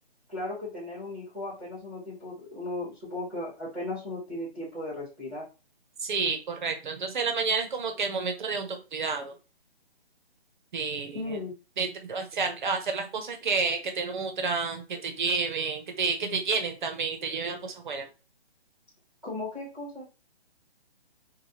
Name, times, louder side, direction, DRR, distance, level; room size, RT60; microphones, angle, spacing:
voice 1, 0.3-5.4 11.1-11.5 19.2-20.1, left 2 dB, 5° right, -9 dB, 1.0 m, -36 dB
voice 2, 6.0-9.3 10.7-11.2 11.8-18.1, right 4 dB, 50° right, 6 dB, 0.7 m, -30 dB
3.3 x 2.3 x 2.7 m, 0.31 s
hypercardioid pair, 160°, 32 cm